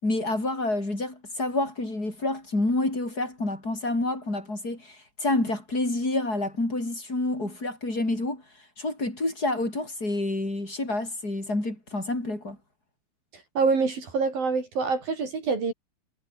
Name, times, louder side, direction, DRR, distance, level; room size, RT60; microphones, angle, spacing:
voice 1, 0.0-8.4 8.8-12.6, left 2 dB, 20° left, 7.7 m, -28 dB
voice 2, 13.6-15.7, right 4 dB, 50° right, 5.9 m, -25 dB
omnidirectional pair, 5.2 m